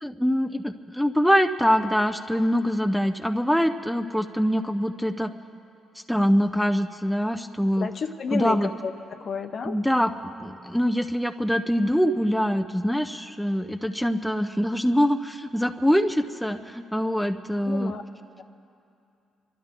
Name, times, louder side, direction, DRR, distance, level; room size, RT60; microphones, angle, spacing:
voice 1, 0.0-5.3 6.1-7.9 8.3-8.7 9.6-18.0, equal, ahead, 6 dB, 0.5 m, -24 dB
voice 2, 7.8-9.8 17.6-18.0, left 5 dB, 55° left, 8 dB, 0.9 m, -31 dB
28.0 x 12.0 x 3.7 m, 2.6 s
cardioid pair, 90°, 0 cm